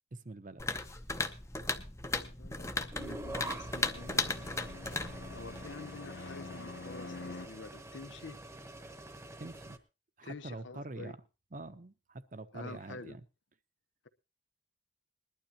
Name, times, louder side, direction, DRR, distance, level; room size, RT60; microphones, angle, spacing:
voice 1, 0.1-0.7 9.4-9.8 10.2-11.2 11.5-13.2, right 2 dB, 45° right, 0.8 m, -45 dB
sound 1, 0.6-5.8, left 3 dB, 15° left, 0.7 m, -36 dB
voice 2, 2.2-4.6 5.3-8.4 10.2-11.1 12.5-13.2, left 3 dB, 85° left, 1.0 m, -48 dB
Fixed-wing aircraft airplane, 2.6-7.5, left 3 dB, 60° left, 0.6 m, -48 dB
sound 2, 2.9-9.8, right 2 dB, 15° right, 1.0 m, -46 dB
20.5 x 12.0 x 2.9 m
head